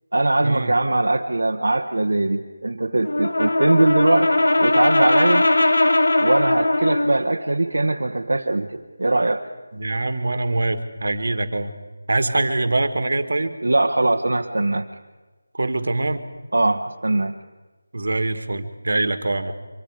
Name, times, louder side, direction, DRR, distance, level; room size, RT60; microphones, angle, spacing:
voice 1, 0.1-4.3 4.6-5.5 6.2-9.4 13.6-14.9 16.5-17.3, right 2 dB, 75° right, 2 dB, 1.2 m, -21 dB
Brass instrument, 3.0-7.2, left 2 dB, 80° left, 1.6 m, -19 dB
voice 2, 9.7-11.7 12.1-13.5 15.5-16.3 17.9-19.5, right 2 dB, 60° right, 10 dB, 1.8 m, -23 dB
24.5 x 24.5 x 5.0 m, 1.2 s
figure-of-eight pair, 175°, 0 cm